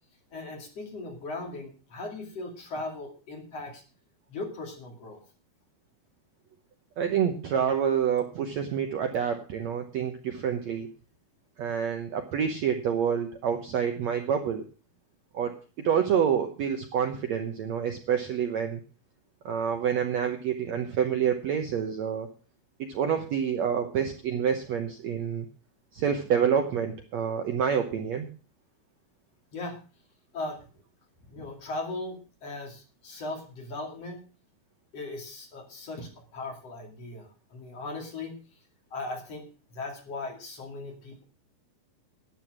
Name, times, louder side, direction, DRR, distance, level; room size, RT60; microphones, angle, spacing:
voice 1, 0.3-3.8 4.3-5.2 29.5-29.8 30.3-30.6 31.3-34.2 34.9-38.4 38.9-39.4 39.7-41.2, left 2 dB, 45° left, 2 dB, 3.2 m, -38 dB
voice 2, 7.0-10.9 11.6-14.6 15.3-15.6 15.8-18.8 19.5-22.3 22.9-25.5 25.9-28.3, right 8 dB, 65° right, 5 dB, 1.8 m, -27 dB
12.0 x 9.0 x 6.1 m, 0.37 s
omnidirectional pair, 4.2 m